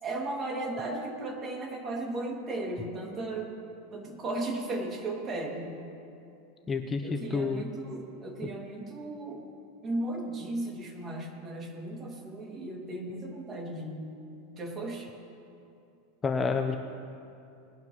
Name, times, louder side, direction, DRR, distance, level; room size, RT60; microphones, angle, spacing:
voice 1, 0.0-3.5 3.9-5.8 7.0-9.4 9.8-14.1 14.6-15.1, right 2 dB, 30° right, 0 dB, 2.3 m, -36 dB
voice 2, 6.7-7.6 16.2-16.8, left 4 dB, 20° left, 5 dB, 0.6 m, -29 dB
20.5 x 11.5 x 3.1 m, 2.6 s
supercardioid pair, 130°, 0 cm